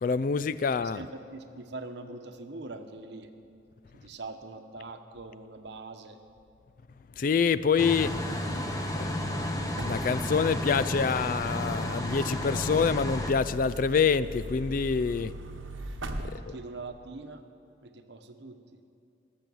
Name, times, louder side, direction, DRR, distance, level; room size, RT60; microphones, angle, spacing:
voice 1, 0.0-1.0 7.2-8.4 8.9-15.3 16.2-16.6, left 5 dB, 45° left, 16 dB, 0.3 m, -27 dB
voice 2, 0.8-3.3 4.0-6.2 16.1-17.4 17.8-18.8, right 3 dB, 65° right, 7 dB, 0.9 m, -43 dB
sound 1, 7.8-13.3, left 1 dB, 20° left, 0.9 m, -32 dB
sound 2, 7.9-16.3, right 1 dB, 90° right, 1.0 m, -41 dB
18.5 x 7.7 x 7.0 m, 2.6 s
head